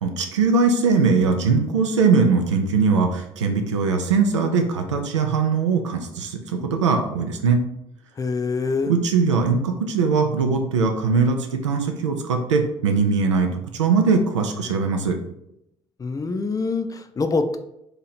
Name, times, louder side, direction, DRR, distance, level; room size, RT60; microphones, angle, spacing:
voice 1, 0.0-7.6 8.9-13.5 13.7-15.2, right 4 dB, 85° right, 4 dB, 0.4 m, -21 dB
voice 2, 8.2-8.9 16.0-17.6, left 4 dB, 25° left, 8 dB, 0.4 m, -25 dB
2.9 x 2.7 x 4.2 m, 0.81 s
figure-of-eight pair, 50°, 15 cm